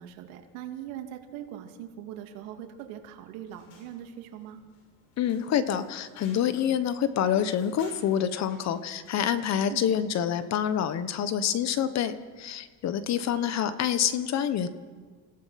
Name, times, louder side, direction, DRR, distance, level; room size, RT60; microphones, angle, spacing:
voice 1, 0.0-4.6 9.7-9.9 13.4-13.5, right 10 dB, 80° right, 4 dB, 2.7 m, -41 dB
sound 1, 3.5-9.6, left 4 dB, 85° left, 6.7 m, -56 dB
voice 2, 5.2-14.7, left 9 dB, 40° left, 12 dB, 1.3 m, -27 dB
28.0 x 16.5 x 5.9 m, 1.5 s
cardioid pair, 135°, 41 cm